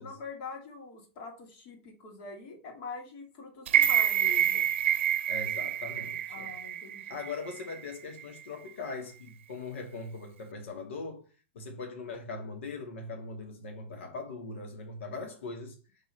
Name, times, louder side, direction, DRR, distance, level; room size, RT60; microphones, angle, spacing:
voice 1, 0.0-4.7 6.3-7.2, left 4 dB, 45° left, 2.1 m, -44 dB
sound 1, 3.7-7.8 8.2-8.3, right 10 dB, 75° right, 0.6 m, -27 dB
voice 2, 5.3-6.5 7.1-11.3 11.5-15.8, left 3 dB, 90° left, 1.6 m, -40 dB
6.1 x 3.1 x 5.8 m
supercardioid pair, 160°, 7 cm